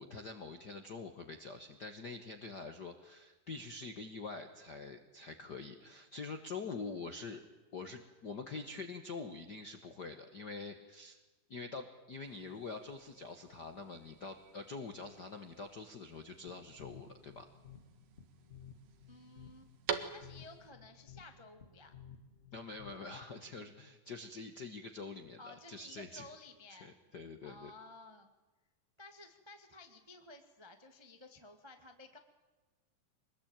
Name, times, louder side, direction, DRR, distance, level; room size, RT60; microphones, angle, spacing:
voice 1, 0.0-7.4 7.7-11.2 11.5-17.5 22.5-26.3 26.7-27.7, left 4 dB, 55° left, 6 dB, 1.1 m, -45 dB
sound 1, 12.2-20.7, right 8 dB, 75° right, 3.2 m, -47 dB
sound 2, 16.5-23.3, left 7 dB, 35° left, 1.2 m, -56 dB
voice 2, 19.1-19.7 20.1-21.9 25.4-26.9 27.4-28.3 29.0-32.2, left 2 dB, 20° right, 5 dB, 0.7 m, -54 dB
25.0 x 20.5 x 9.0 m, 1.2 s
omnidirectional pair, 4.0 m